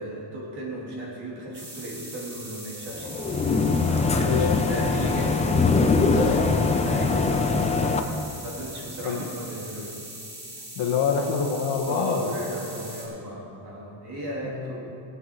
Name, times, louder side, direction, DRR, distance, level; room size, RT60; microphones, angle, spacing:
voice 1, 0.0-3.1 3.5-10.0 11.8-14.8, right 1 dB, 50° right, -3 dB, 3.1 m, -36 dB
sound 1, 1.5-13.1, right 1 dB, 35° right, 3.3 m, -41 dB
sound 2, 3.0-8.0, left 4 dB, 15° left, 0.3 m, -22 dB
voice 2, 4.3-4.6 6.1-6.6 9.0-9.2 10.8-12.6 14.4-14.7, left 6 dB, 65° left, 1 dB, 1.7 m, -26 dB
18.0 x 8.4 x 4.7 m, 2.6 s
cardioid pair, 175°, 48 cm